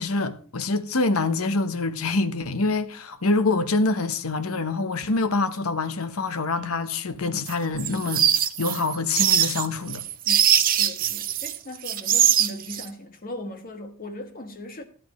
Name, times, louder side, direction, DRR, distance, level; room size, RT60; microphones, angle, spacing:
voice 1, 0.0-8.2 8.6-10.0, left 3 dB, 70° left, 1.0 m, -25 dB
sound 1, 7.5-11.6 11.8-12.8, right 10 dB, 40° right, 0.7 m, -22 dB
voice 2, 10.2-14.8, left 1 dB, 40° left, 1.6 m, -38 dB
16.0 x 10.5 x 3.1 m
head